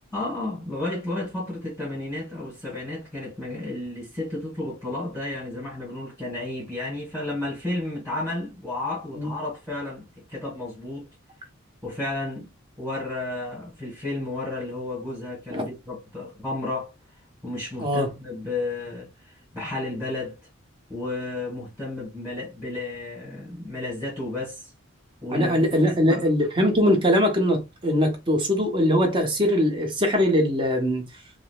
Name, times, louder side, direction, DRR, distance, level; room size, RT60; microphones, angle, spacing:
voice 1, 0.1-11.1 11.8-12.5 12.8-16.9 17.4-20.4 20.9-24.7 25.2-26.3, left 2 dB, 5° right, 1.3 m, -32 dB
voice 2, 25.3-31.0, equal, 25° right, 0.9 m, -21 dB
4.8 x 2.0 x 2.3 m
head